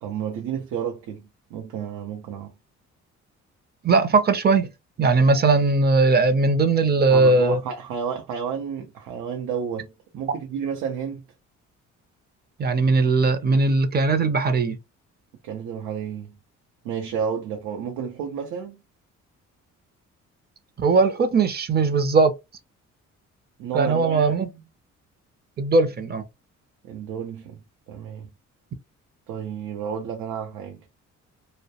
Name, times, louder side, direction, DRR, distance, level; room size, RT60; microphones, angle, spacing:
voice 1, 0.0-2.6 7.1-11.2 15.4-16.4 16.8-18.8 23.6-24.6 26.8-28.3 29.3-30.9, right 7 dB, 90° right, 0.5 m, -31 dB
voice 2, 3.8-4.7 5.0-7.6 12.6-14.8 20.8-22.3 23.7-24.5 25.6-26.2, right 3 dB, 35° right, 0.5 m, -19 dB
2.3 x 2.1 x 2.7 m
cardioid pair, 90°, 30 cm